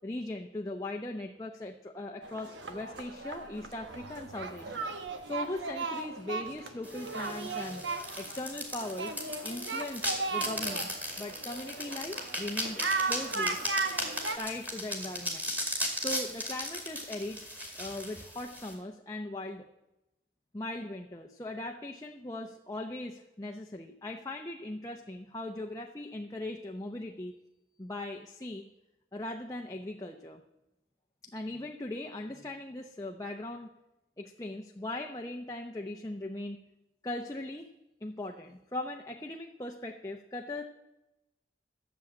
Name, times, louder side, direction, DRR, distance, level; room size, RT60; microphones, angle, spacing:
voice 1, 0.0-4.9 5.3-7.9 8.2-9.2 9.4-10.1 10.3-13.6 14.4-15.5 16.0-17.4 17.8-19.7 20.5-27.3 27.8-28.7 29.1-30.4 31.2-33.7 34.2-36.6 37.0-37.7 38.0-40.6, left 2 dB, 20° left, 2 dB, 0.7 m, -39 dB
sound 1, 2.2-14.4, right 3 dB, 90° right, 1.3 m, -37 dB
sound 2, 6.8-18.7, equal, 10° right, 2.2 m, -37 dB
13.5 x 7.2 x 8.6 m, 0.94 s
head